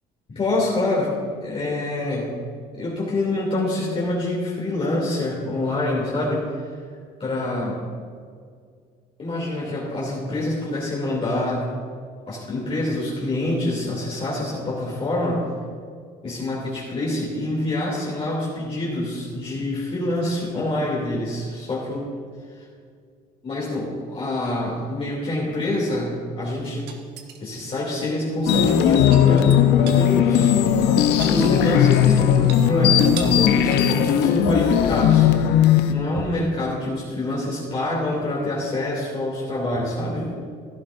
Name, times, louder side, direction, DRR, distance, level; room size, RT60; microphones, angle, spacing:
voice 1, 0.3-1.1 1.4-2.3 2.8-6.5 7.2-7.8 9.2-11.7 12.3-15.4 16.2-22.1 23.4-26.9 27.4-29.7 29.9-30.6 30.8-35.3 35.9-40.3, left 1 dB, 35° left, -6 dB, 2.9 m, -26 dB
sound 1, 26.9-27.7 28.5-30.1 30.4-30.5 30.8-32.0 32.4-32.6 33.0-33.5 33.7-34.0 36.1-36.5 38.2-38.3, right 5 dB, 85° right, 1.3 m, -37 dB
sound 2, 28.5-35.9, left 9 dB, 80° left, 0.7 m, -17 dB
16.0 x 11.5 x 2.6 m, 2.1 s
cardioid pair, 110°, 17 cm